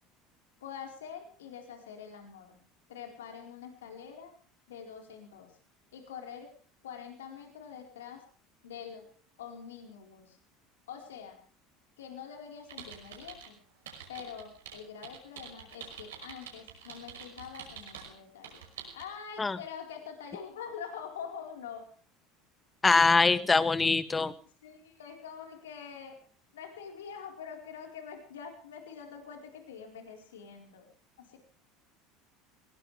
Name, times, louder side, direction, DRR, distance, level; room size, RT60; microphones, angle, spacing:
voice 1, 0.6-2.6 2.9-4.3 4.7-5.5 5.9-6.5 6.8-8.2 8.6-9.1 9.4-10.4 10.9-11.4 12.0-13.6 14.1-18.6 18.9-21.9 24.6-26.2 26.5-30.9 31.3-31.4, left 7 dB, 85° left, 3 dB, 4.4 m, -45 dB
sound 1, 12.7-13.5 13.9-18.1 18.4-19.0, right 7 dB, 85° right, 5.7 m, -46 dB
voice 2, 22.8-24.3, left 4 dB, 20° left, 13 dB, 1.6 m, -23 dB
21.5 x 19.0 x 3.4 m, 0.44 s
hypercardioid pair, 80°, 0 cm